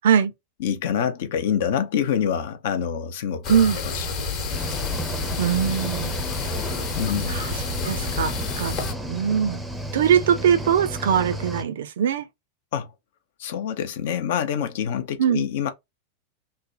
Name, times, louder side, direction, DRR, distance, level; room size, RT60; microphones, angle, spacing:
voice 1, 0.6-4.1 7.0-7.4 12.7-12.9 13.4-15.7, left 8 dB, 55° left, 0.5 m, -26 dB
sound 1, 3.4-8.9, left 4 dB, 40° left, 0.9 m, -29 dB
voice 2, 3.5-3.8 5.4-6.1 7.3-7.5 7.8-8.8 9.1-9.6 9.9-12.2 15.2-15.5, right 8 dB, 60° right, 0.4 m, -21 dB
Cricket / Waves surf, 4.5-11.6, right 1 dB, 5° right, 0.6 m, -33 dB
3.2 x 2.1 x 2.4 m
figure-of-eight pair, 90°, 0 cm